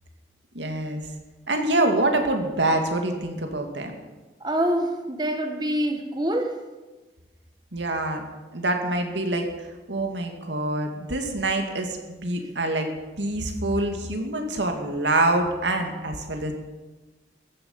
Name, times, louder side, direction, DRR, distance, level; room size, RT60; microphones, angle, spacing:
voice 1, 0.5-1.0 1.5-4.0 7.7-8.2 8.5-9.5 9.9-12.9 13.2-16.5, right 2 dB, 90° right, 4 dB, 2.4 m, -25 dB
voice 2, 4.4-6.5, right 1 dB, 25° right, 5 dB, 1.2 m, -25 dB
15.0 x 12.0 x 7.4 m, 1.2 s
head